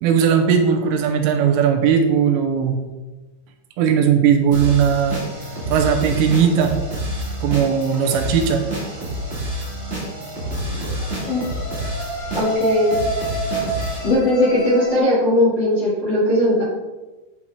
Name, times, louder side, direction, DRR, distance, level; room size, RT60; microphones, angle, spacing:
voice 1, 0.0-2.8 3.8-5.2 5.7-6.8 7.4-8.6 10.7-11.0 13.5-13.8, right 7 dB, 85° right, 5 dB, 3.3 m, -18 dB
sound 1, 4.5-14.1, equal, 60° right, 0.6 m, -28 dB
sound 2, 7.5-8.2 10.5-15.0, right 2 dB, 80° left, 3.9 m, -29 dB
voice 2, 12.3-13.0 14.0-16.6, left 1 dB, 40° left, -7 dB, 1.7 m, -18 dB
9.9 x 8.6 x 3.6 m, 1.1 s
omnidirectional pair, 5.8 m